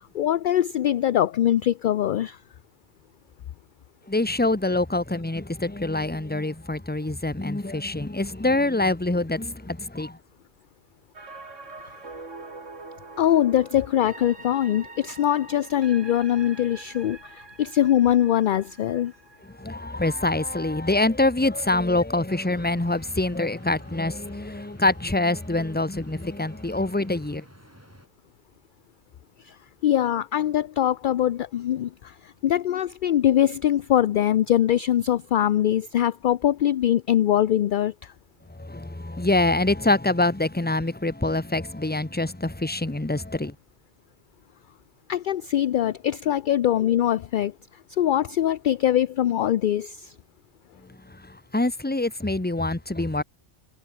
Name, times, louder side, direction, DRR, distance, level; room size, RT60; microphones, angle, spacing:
voice 1, 0.1-2.4 13.2-19.1 29.4-29.6 29.8-38.1 45.1-47.5 47.9-50.1, left 11 dB, 60° left, 0.5 m, -22 dB
voice 2, 4.1-10.2 19.6-27.4 38.6-43.5 51.5-53.2, left 2 dB, 10° left, 1.1 m, -25 dB
sound 1, 11.1-21.2 21.5-21.6, right 3 dB, 80° right, 3.5 m, -45 dB
sound 2, 22.3-28.1, equal, 10° right, 8.1 m, -51 dB
omnidirectional pair, 1.3 m